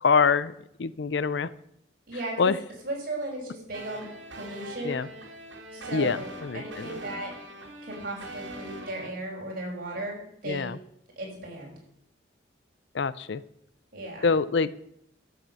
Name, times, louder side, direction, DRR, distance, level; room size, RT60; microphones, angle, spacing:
voice 1, 0.0-0.5 0.8-1.5 2.4-2.6 4.8-5.1 5.9-7.0 10.5-10.8 12.9-13.4 14.2-14.7, left 5 dB, 70° left, 18 dB, 0.6 m, -25 dB
voice 2, 2.1-2.5 2.8-5.0 5.7-7.3 7.8-10.7 11.2-11.7 13.9-14.3, right 1 dB, 50° right, -2 dB, 5.7 m, -36 dB
sound 1, 3.7-9.1, right 1 dB, 85° right, 2.8 m, -42 dB
12.0 x 7.8 x 7.7 m, 0.74 s
head